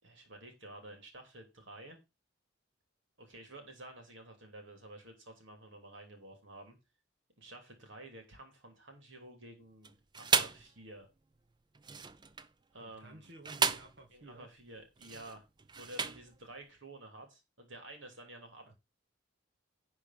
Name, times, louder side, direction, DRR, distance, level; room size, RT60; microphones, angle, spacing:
voice 1, 0.0-2.0 3.2-6.8 7.4-11.1 12.7-13.3 14.1-15.4 15.8-18.8, right 1 dB, 70° right, 4 dB, 3.0 m, -51 dB
sound 1, 9.8-10.7 11.7-12.5 13.2-14.0 15.0-16.4, right 5 dB, 20° right, 0.5 m, -33 dB
voice 2, 12.8-14.5 18.6-18.7, right 2 dB, 55° right, 3 dB, 2.2 m, -54 dB
11.0 x 4.4 x 5.8 m, 0.25 s
head